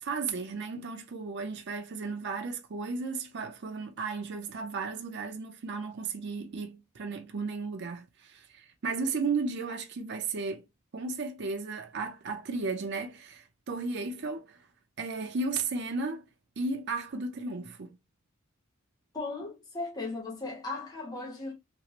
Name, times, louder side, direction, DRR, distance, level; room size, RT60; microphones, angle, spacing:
voice 1, 0.0-10.7 10.9-14.7 15.0-16.3 16.6-18.0, right 4 dB, 55° right, 0.5 m, -34 dB
voice 2, 19.1-21.5, left 3 dB, 20° left, 0.8 m, -37 dB
3.1 x 2.4 x 2.8 m
head